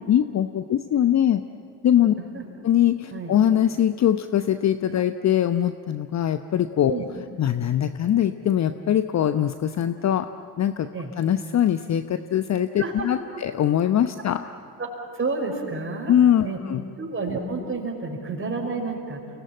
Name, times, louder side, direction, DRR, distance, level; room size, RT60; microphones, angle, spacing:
voice 1, 0.1-1.4 1.8-2.1 2.6-6.9 7.4-10.3 10.6-10.9 11.2-14.4 16.1-16.8, left 10 dB, 35° left, 10 dB, 0.9 m, -22 dB
voice 2, 15.1-16.1 16.4-16.6 16.9-19.2, right 3 dB, 25° right, 0 dB, 5.7 m, -29 dB
29.5 x 18.5 x 9.0 m, 2.3 s
figure-of-eight pair, 45°, 48 cm